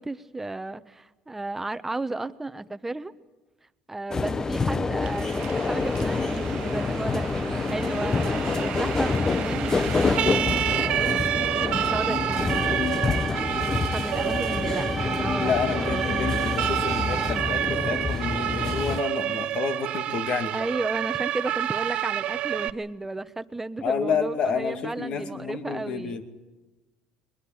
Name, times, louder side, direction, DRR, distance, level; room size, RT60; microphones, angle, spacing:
voice 1, 0.0-3.1 3.9-12.7 13.9-16.1 20.5-26.2, right 2 dB, 15° right, 1.1 m, -34 dB
sound 1, 4.1-19.0, left 4 dB, 25° left, 1.0 m, -27 dB
Siren, 5.0-22.7, right 13 dB, 60° right, 0.7 m, -29 dB
sound 2, 12.4-17.4, left 1 dB, 5° left, 0.7 m, -38 dB
voice 2, 15.4-20.5 23.8-26.2, left 6 dB, 55° left, 2.5 m, -29 dB
21.5 x 21.5 x 8.9 m
supercardioid pair, 75°, 2 cm